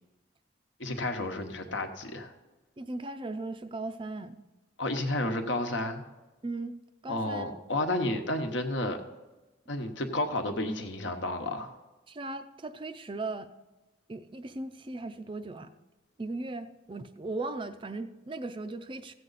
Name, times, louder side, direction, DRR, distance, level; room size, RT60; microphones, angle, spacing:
voice 1, 0.8-2.3 4.8-6.0 7.1-9.0 9.7-11.7, left 1 dB, 70° left, 5 dB, 1.1 m, -31 dB
voice 2, 2.8-4.4 6.4-6.8 7.0-7.5 12.1-13.5 14.1-15.7 16.2-19.1, right 2 dB, 25° right, 10 dB, 0.4 m, -37 dB
15.5 x 7.6 x 4.0 m, 1.1 s
head